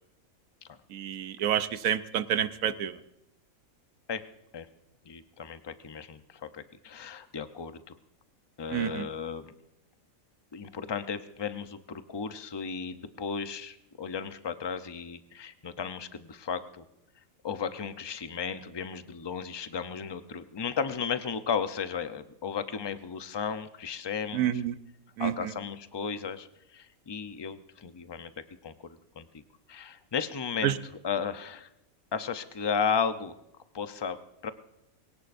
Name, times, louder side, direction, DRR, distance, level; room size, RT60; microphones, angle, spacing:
voice 1, 0.9-3.0 8.7-9.1 24.3-24.7 25.2-25.5 30.6-30.8, right 10 dB, 90° right, 13 dB, 1.2 m, -29 dB
voice 2, 5.1-7.9 8.6-9.5 10.5-16.8 17.4-24.5 25.2-26.5 26.7-28.3 28.6-29.4 29.7-30.8 31.0-31.7 32.1-33.3 33.7-34.2 34.4-34.5, left 6 dB, 30° left, 10 dB, 0.5 m, -34 dB
23.0 x 17.5 x 2.6 m, 0.85 s
omnidirectional pair, 1.4 m